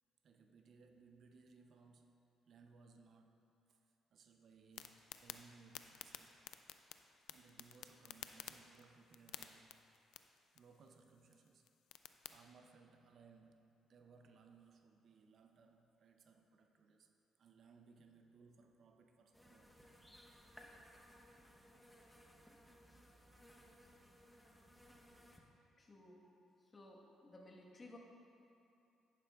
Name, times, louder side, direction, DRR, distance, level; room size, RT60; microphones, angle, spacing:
voice 1, 0.2-6.4 7.3-9.8 10.5-11.7 12.3-17.1 17.4-19.8, right 4 dB, 60° right, 5 dB, 0.6 m, -64 dB
sound 1, 4.7-12.4, left 11 dB, 80° left, 0.3 m, -55 dB
sound 2, 19.3-25.4, equal, 5° left, 1.0 m, -62 dB
voice 2, 25.8-28.0, left 2 dB, 30° left, -1 dB, 1.3 m, -58 dB
10.5 x 9.6 x 2.4 m, 2.7 s
supercardioid pair, 70°, 0 cm